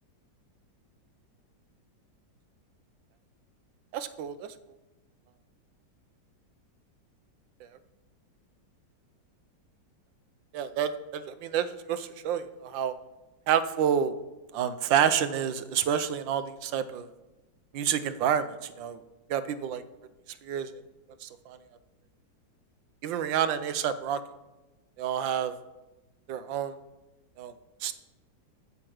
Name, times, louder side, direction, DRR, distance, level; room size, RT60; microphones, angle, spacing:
voice 1, 3.9-4.5 10.5-12.9 13.5-14.1 14.5-17.1 17.7-19.0 19.3-19.8 20.4-20.7 21.2-21.6 23.0-24.2 25.0-25.5 26.3-26.8 27.4-27.5 27.8-27.9, right 9 dB, 90° right, 12 dB, 1.4 m, -28 dB
9.1 x 7.9 x 6.3 m, 1.1 s
omnidirectional pair, 2.0 m